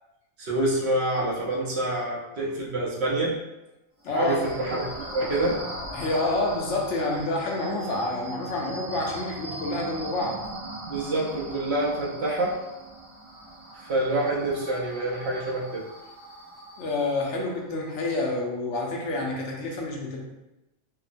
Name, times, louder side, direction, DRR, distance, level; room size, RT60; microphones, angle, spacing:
voice 1, 0.4-3.4 4.1-5.6 10.9-12.6 13.7-15.8, right 1 dB, 65° right, -4 dB, 0.8 m, -27 dB
voice 2, 4.0-4.4 5.9-10.4 16.8-20.2, left 2 dB, 70° left, -1 dB, 0.9 m, -28 dB
sound 1, 4.0-17.4, right 1 dB, 85° right, 1.1 m, -40 dB
2.9 x 2.0 x 2.5 m, 0.96 s
omnidirectional pair, 1.3 m